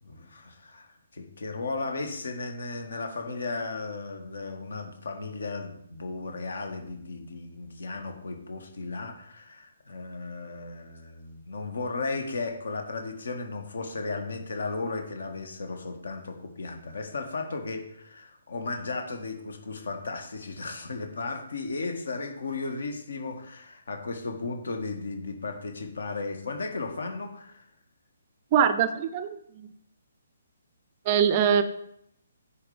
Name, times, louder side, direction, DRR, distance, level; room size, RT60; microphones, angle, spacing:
voice 1, 0.0-27.6, left 3 dB, 60° left, 5 dB, 1.5 m, -35 dB
voice 2, 28.5-29.7 31.1-31.6, right 8 dB, 30° right, 12 dB, 0.5 m, -23 dB
10.0 x 4.3 x 5.1 m, 0.75 s
figure-of-eight pair, 135°, 0 cm